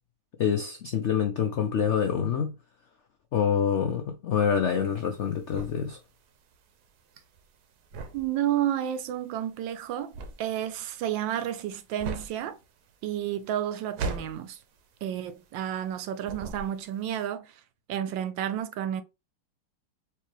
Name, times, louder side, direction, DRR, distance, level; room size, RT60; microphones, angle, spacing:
voice 1, 0.4-2.5 3.3-6.0, left 7 dB, 75° left, 0.6 m, -26 dB
sound 1, 4.8-15.9 16.2-17.1, right 4 dB, 65° right, 1.2 m, -40 dB
voice 2, 8.1-12.6 13.0-14.6 15.0-17.5 17.9-19.0, right 11 dB, 85° right, 1.4 m, -31 dB
4.6 x 2.8 x 3.0 m
omnidirectional pair, 2.0 m